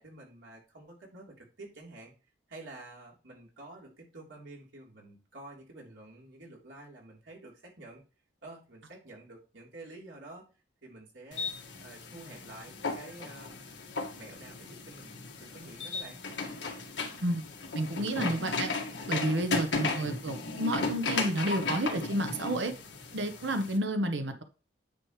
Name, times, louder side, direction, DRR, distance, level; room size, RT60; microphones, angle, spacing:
voice 1, 0.0-2.1 2.5-8.0 8.4-10.5 10.8-11.5 11.8-13.6 14.1-16.2, right 2 dB, 85° right, -3 dB, 3.4 m, -49 dB
sound 1, 11.3-23.8, left 3 dB, 70° left, 1.8 m, -36 dB
voice 2, 17.7-18.7 19.1-22.7 23.1-24.4, right 1 dB, 70° right, 7 dB, 0.9 m, -30 dB
9.6 x 6.2 x 3.2 m, 0.35 s
head